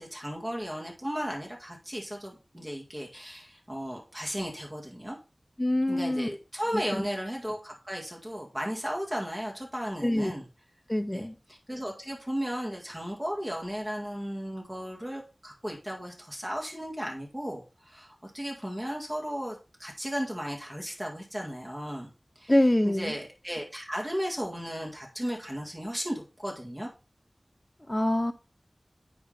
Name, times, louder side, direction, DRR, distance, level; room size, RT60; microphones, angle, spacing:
voice 1, 0.0-5.2 5.9-10.5 11.1-22.1 22.4-22.6 22.8-26.9, equal, 20° right, 1.8 m, -35 dB
voice 2, 5.6-6.4 6.9-7.1 10.0-10.3 10.9-11.3 22.5-23.1 27.9-28.3, left 1 dB, 20° left, 0.6 m, -25 dB
9.4 x 3.7 x 3.3 m
wide cardioid pair, 45°, 0 cm